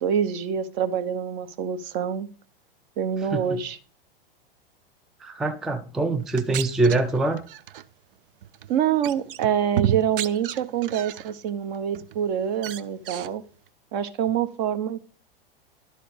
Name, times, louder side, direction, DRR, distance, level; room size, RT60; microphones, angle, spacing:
voice 1, 0.0-2.3 3.0-3.8 8.7-13.4 13.9-15.0, right 8 dB, 50° right, 1.0 m, -26 dB
voice 2, 5.2-7.4, right 3 dB, ahead, 0.3 m, -24 dB
sound 1, 6.2-7.8 8.4-8.7 9.0-11.3 11.7-12.2 12.5-13.3, right 11 dB, 65° right, 0.5 m, -32 dB
11.0 x 4.2 x 5.1 m
hypercardioid pair, 100°, 29 cm